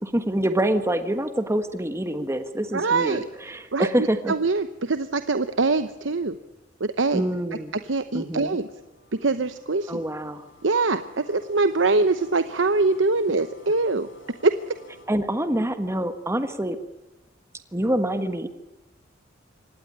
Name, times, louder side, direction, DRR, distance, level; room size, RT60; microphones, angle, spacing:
voice 1, 0.0-4.3 7.1-7.7 8.1-8.6 9.9-10.4 15.1-16.8 17.7-18.5, right 1 dB, 15° right, 9 dB, 1.3 m, -26 dB
voice 2, 2.7-3.2 3.7-6.4 6.8-7.2 7.9-8.7 9.1-10.0 10.6-14.1 14.4-14.7, right 3 dB, 70° right, 11 dB, 1.0 m, -23 dB
sound 1, 7.4-15.1, left 2 dB, 80° left, 5.2 m, -53 dB
24.5 x 18.5 x 9.9 m, 1.0 s
head